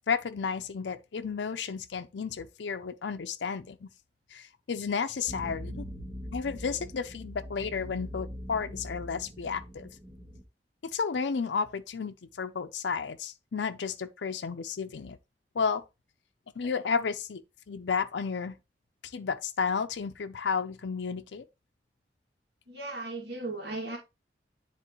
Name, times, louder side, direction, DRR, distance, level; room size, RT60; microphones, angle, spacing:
voice 1, 0.1-3.9 4.3-5.8 6.3-9.9 10.9-15.2 15.5-15.8 16.6-17.4 17.7-18.6 19.0-21.5, left 5 dB, 85° left, 0.5 m, -32 dB
sound 1, 5.3-10.4, equal, 25° right, 1.5 m, -42 dB
voice 2, 22.7-24.0, right 2 dB, 70° right, 2.3 m, -36 dB
9.8 x 3.7 x 3.0 m
head